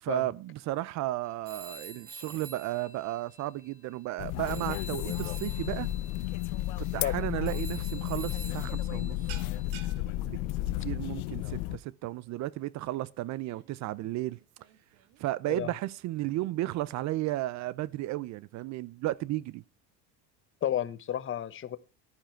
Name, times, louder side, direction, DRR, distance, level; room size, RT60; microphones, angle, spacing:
voice 1, 0.0-5.9 6.8-9.2 10.2-10.4 10.8-14.4 15.2-19.6, right 16 dB, 50° right, 0.6 m, -34 dB
Telephone, 1.4-4.2 4.5-9.7, right 2 dB, 25° right, 2.3 m, -48 dB
sound 1, 4.2-11.8, left 15 dB, 90° left, 0.7 m, -33 dB
sound 2, 9.3-15.7, right 9 dB, 80° right, 2.1 m, -53 dB
voice 2, 20.6-21.8, left 10 dB, 35° left, 1.0 m, -32 dB
11.5 x 10.0 x 4.5 m
cardioid pair, 125°, 36 cm